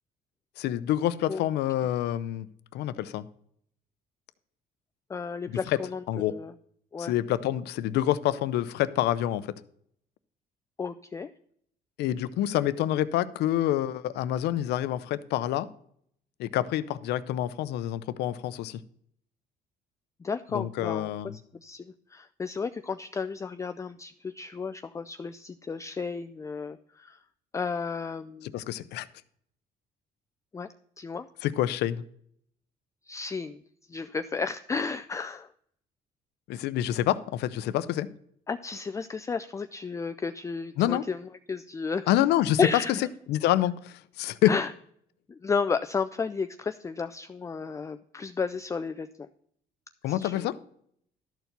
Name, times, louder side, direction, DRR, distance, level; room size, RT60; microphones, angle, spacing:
voice 1, 0.6-2.5 2.7-3.3 5.5-5.8 6.1-6.3 7.0-9.5 12.0-15.7 16.4-18.8 20.5-21.4 28.4-29.1 31.4-32.0 36.5-38.1 40.8-41.1 42.1-42.6 43.3-44.5 50.0-50.6, left 13 dB, 80° left, 15 dB, 0.6 m, -27 dB
voice 2, 5.1-6.5 6.9-7.1 10.8-11.3 20.2-21.1 21.6-27.2 27.5-28.5 30.5-30.7 31.0-31.3 33.1-33.6 33.9-35.5 38.5-42.2 42.6-43.1 44.5-44.7 45.3-49.1 50.1-50.5, left 5 dB, 20° left, 10 dB, 0.4 m, -33 dB
12.5 x 4.6 x 6.7 m, 0.66 s
cardioid pair, 110°, 17 cm